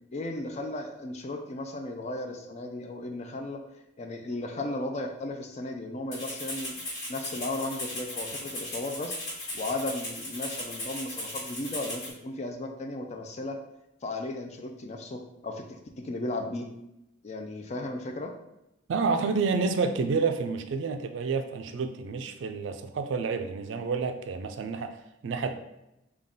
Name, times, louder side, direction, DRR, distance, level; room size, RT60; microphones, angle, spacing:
voice 1, 0.1-3.6 4.0-6.8 7.1-9.2 9.5-13.6 14.0-16.7 17.2-18.3, left 2 dB, 35° left, 4 dB, 0.4 m, -35 dB
Rattle (instrument), 6.1-12.1, left 1 dB, 55° left, 1.5 m, -37 dB
voice 2, 18.9-24.9 25.2-25.6, right 4 dB, 70° right, 7 dB, 0.4 m, -29 dB
3.8 x 2.4 x 3.6 m, 0.88 s
head